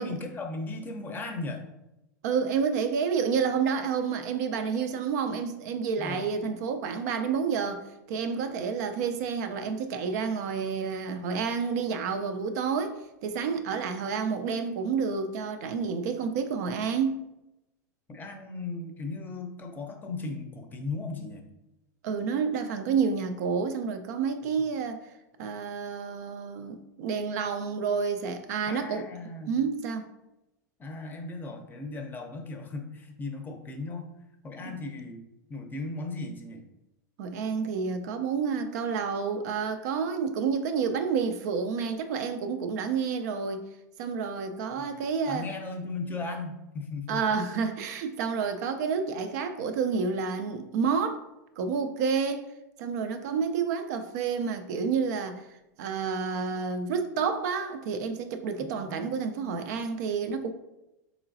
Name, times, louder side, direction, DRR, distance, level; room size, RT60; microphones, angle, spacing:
voice 1, 0.0-1.6 6.0-6.2 18.1-21.4 24.4-24.6 28.6-29.6 30.8-34.1 34.4-35.2 35.5-36.6 44.8-45.0 45.3-47.2 58.6-59.1, left 3 dB, 20° left, 4 dB, 0.6 m, -37 dB
voice 2, 2.2-17.2 22.0-25.0 25.4-29.0 29.5-30.1 34.6-34.8 37.2-43.6 44.0-45.5 47.1-51.2 51.6-52.5 52.8-55.5 55.8-60.5, right 6 dB, 65° right, 8 dB, 0.4 m, -29 dB
3.8 x 3.0 x 2.6 m, 0.92 s
hypercardioid pair, 100°, 10 cm